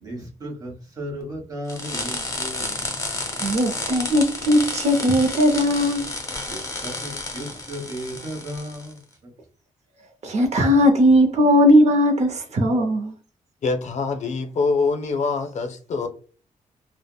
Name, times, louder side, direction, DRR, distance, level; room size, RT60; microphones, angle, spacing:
voice 1, 0.0-2.8 6.5-8.9, equal, 30° right, 1.3 m, -35 dB
sound 1, 1.7-8.9, left 2 dB, 25° left, 0.7 m, -31 dB
voice 2, 3.4-6.1 10.2-13.1, equal, 55° right, 0.6 m, -18 dB
voice 3, 13.6-16.1, left 4 dB, 60° left, 0.5 m, -24 dB
3.4 x 2.0 x 2.2 m
wide cardioid pair, 130°, 14 cm